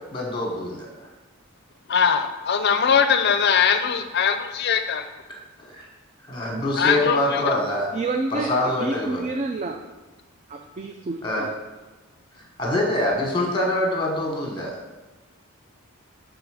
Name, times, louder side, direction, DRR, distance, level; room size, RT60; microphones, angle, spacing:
voice 1, 0.1-1.1 5.6-5.9 6.3-7.9 8.3-9.2 11.2-11.4 12.6-14.8, left 1 dB, 20° left, 0 dB, 1.1 m, -25 dB
voice 2, 1.9-5.1 6.8-7.4, left 7 dB, 50° left, 8 dB, 0.5 m, -21 dB
voice 3, 7.9-9.8 10.5-11.5, right 3 dB, 30° right, 4 dB, 0.3 m, -29 dB
6.5 x 3.8 x 4.8 m, 1.2 s
head